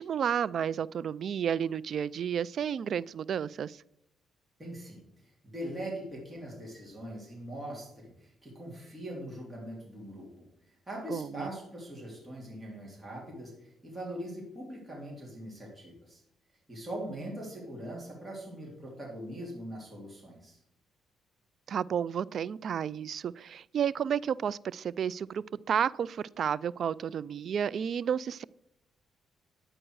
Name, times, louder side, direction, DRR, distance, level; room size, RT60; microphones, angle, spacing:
voice 1, 0.0-3.8 11.1-11.5 21.7-28.4, right 8 dB, 60° right, 21 dB, 0.3 m, -31 dB
voice 2, 4.6-10.5 10.9-16.2 16.7-20.6, right 1 dB, 15° right, -3 dB, 3.2 m, -41 dB
10.0 x 8.7 x 4.7 m, 0.80 s
cardioid pair, 90°, 0 cm